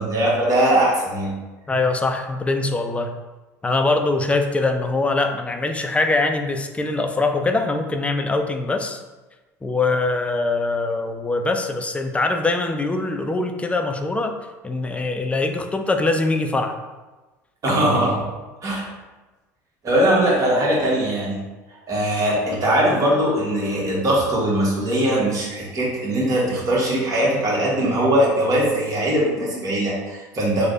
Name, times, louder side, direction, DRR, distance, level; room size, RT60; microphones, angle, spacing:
voice 1, 0.0-1.4 17.6-18.2 18.6-18.9 19.8-21.4 21.9-30.7, right 1 dB, 40° right, -5 dB, 1.3 m, -20 dB
voice 2, 1.7-3.1 3.6-9.0 9.6-14.4 14.6-16.8, left 3 dB, 15° left, 5 dB, 0.4 m, -22 dB
3.2 x 2.2 x 3.8 m, 1.2 s
hypercardioid pair, 70°, 9 cm